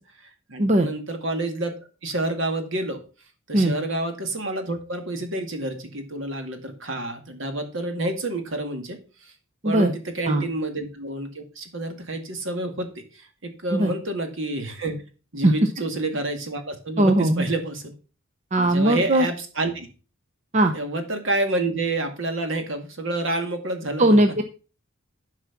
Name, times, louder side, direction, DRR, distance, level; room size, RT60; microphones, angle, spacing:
voice 1, 0.2-1.7 2.0-3.0 3.5-9.3 9.6-15.0 15.3-17.9 18.6-19.9 20.7-24.2, right 2 dB, 60° right, 6 dB, 2.0 m, -29 dB
voice 2, 17.0-17.5 18.5-19.3 20.5-20.7 24.0-24.4, right 1 dB, 35° right, 5 dB, 0.7 m, -19 dB
12.0 x 4.8 x 5.9 m, 0.35 s
head